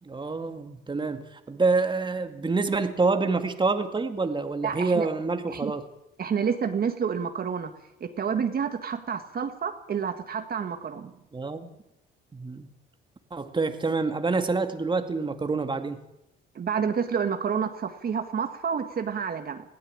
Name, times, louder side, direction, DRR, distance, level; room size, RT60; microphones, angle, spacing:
voice 1, 0.0-5.9 11.3-11.7 12.3-12.7 13.3-16.0, right 3 dB, 25° right, 7 dB, 2.1 m, -27 dB
voice 2, 4.6-5.1 5.5-5.7 6.2-7.7 8.0-11.1 16.6-19.6, right 7 dB, 50° right, 6 dB, 1.8 m, -29 dB
20.0 x 15.5 x 8.8 m, 0.84 s
cardioid pair, 90°, 20 cm